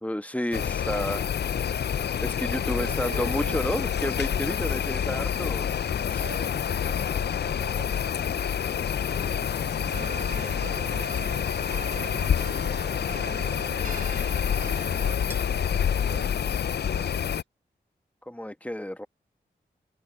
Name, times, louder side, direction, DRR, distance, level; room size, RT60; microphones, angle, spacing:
voice 1, 0.0-1.5 1.9-5.7 6.1-6.2 18.3-19.1, left 1 dB, 5° left, 1.3 m, -31 dB
sound 1, 0.5-17.4, left 8 dB, 60° left, 0.5 m, -27 dB
voice 2, 2.8-4.0 6.1-8.9 9.7-11.2 11.9-17.4, right 6 dB, 70° right, 3.8 m, -46 dB
sound 2, 9.1-15.2, right 7 dB, 45° right, 0.4 m, -42 dB
Cutlery silverware, 13.1-15.5, right 1 dB, 10° right, 3.8 m, -52 dB
supercardioid pair, 40°, 19 cm